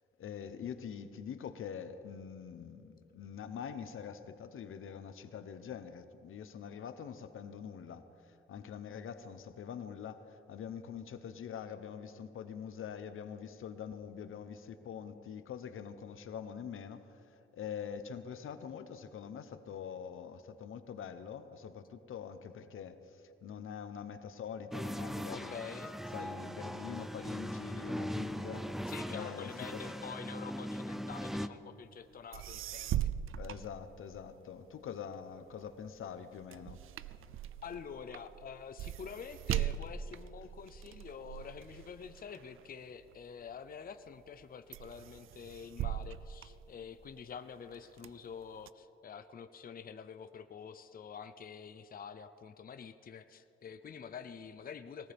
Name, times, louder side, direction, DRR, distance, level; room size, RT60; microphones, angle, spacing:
voice 1, 0.2-25.5 26.1-29.8 33.4-36.8, left 7 dB, 85° left, 10 dB, 0.8 m, -45 dB
sound 1, 24.7-31.5, equal, ahead, 0.5 m, -40 dB
voice 2, 25.3-26.0 28.9-33.1 37.6-55.1, left 7 dB, 45° left, 10 dB, 0.6 m, -47 dB
sound 2, 32.1-32.2 32.3-34.4 34.9-43.5 44.1-44.4 44.7-47.2 47.7-48.7, right 11 dB, 85° right, 0.4 m, -40 dB
20.5 x 18.5 x 3.5 m, 2.7 s
wide cardioid pair, 115°, 21 cm